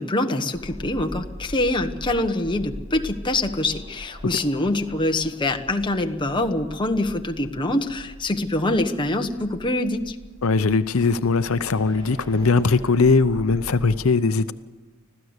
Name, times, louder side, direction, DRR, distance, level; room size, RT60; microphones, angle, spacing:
voice 1, 0.0-10.1, left 1 dB, 25° left, 4 dB, 1.3 m, -24 dB
sound 1, 0.5-14.0, equal, 20° right, 5.4 m, -41 dB
voice 2, 10.4-14.5, left 4 dB, 80° left, 12 dB, 0.7 m, -20 dB
25.5 x 16.0 x 8.1 m, 1.4 s
head